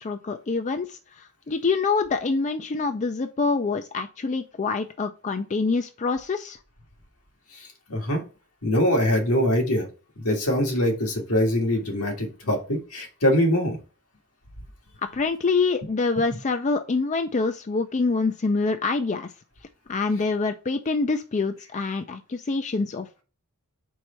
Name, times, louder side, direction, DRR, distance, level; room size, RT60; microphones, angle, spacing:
voice 1, 0.0-6.6 15.1-19.3 19.9-23.2, left 4 dB, 30° left, 0.4 m, -26 dB
voice 2, 7.5-8.2 8.6-9.9 10.2-13.8, left 1 dB, 80° left, 2.0 m, -23 dB
4.6 x 4.1 x 5.6 m
head